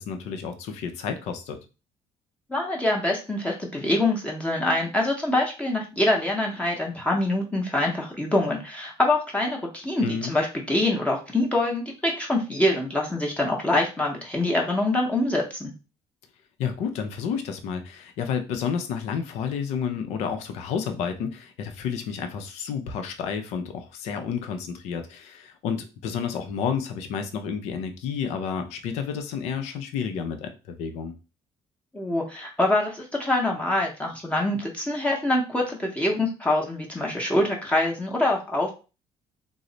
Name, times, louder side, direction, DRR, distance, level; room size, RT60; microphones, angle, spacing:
voice 1, 0.0-1.6 10.0-10.3 16.6-31.1, left 7 dB, 80° left, 7 dB, 0.6 m, -30 dB
voice 2, 2.5-15.7 31.9-38.7, left 1 dB, 10° left, -1 dB, 0.8 m, -25 dB
3.1 x 2.0 x 3.8 m, 0.32 s
cardioid pair, 110°, 11 cm